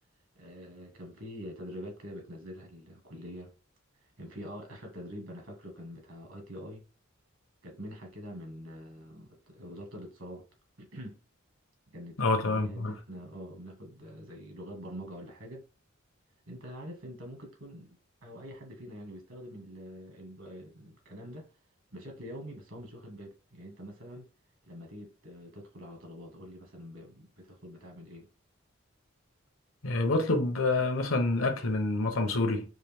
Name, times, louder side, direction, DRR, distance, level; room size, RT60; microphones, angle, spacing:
voice 1, 0.4-3.5 4.2-6.8 7.6-10.4 10.8-11.2 11.9-15.7 16.5-18.0 18.2-21.5 21.9-24.3 24.6-28.3, equal, 70° right, 1.7 m, -45 dB
voice 2, 12.2-12.9 29.8-32.6, left 2 dB, 85° left, 0.9 m, -27 dB
4.7 x 2.7 x 3.5 m
head